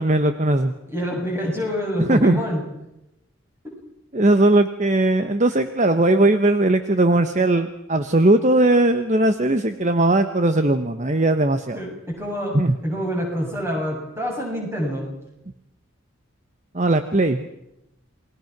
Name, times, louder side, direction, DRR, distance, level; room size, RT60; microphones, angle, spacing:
voice 1, 0.0-0.7 2.0-2.4 4.1-11.8 12.5-12.7 16.7-17.5, right 2 dB, 35° right, 9 dB, 1.1 m, -18 dB
voice 2, 0.8-2.6 11.7-15.1, equal, 10° right, 0 dB, 7.6 m, -27 dB
28.5 x 21.0 x 6.0 m, 0.88 s
head